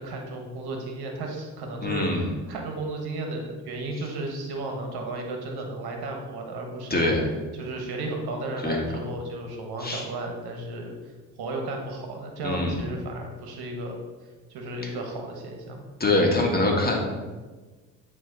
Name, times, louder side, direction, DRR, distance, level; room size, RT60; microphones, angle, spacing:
voice 1, 0.0-7.1 7.5-10.9 11.4-14.0 14.5-15.8, right 2 dB, 65° right, 2 dB, 1.4 m, -34 dB
voice 2, 1.8-2.3 6.9-7.3 8.6-8.9 9.8-10.0 12.4-12.8 16.0-17.0, left 2 dB, 20° left, 0 dB, 1.7 m, -23 dB
9.2 x 3.1 x 4.0 m, 1.3 s
hypercardioid pair, 60°, 41 cm